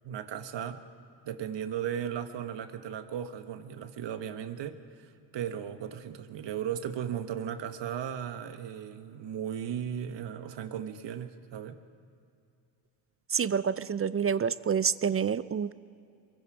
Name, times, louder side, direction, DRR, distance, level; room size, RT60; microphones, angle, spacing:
voice 1, 0.0-0.8 1.2-11.8, right 9 dB, 60° right, 9 dB, 1.5 m, -36 dB
voice 2, 13.3-15.7, right 7 dB, 30° right, 16 dB, 0.5 m, -28 dB
23.5 x 22.0 x 5.0 m, 2.5 s
supercardioid pair, 75°, 48 cm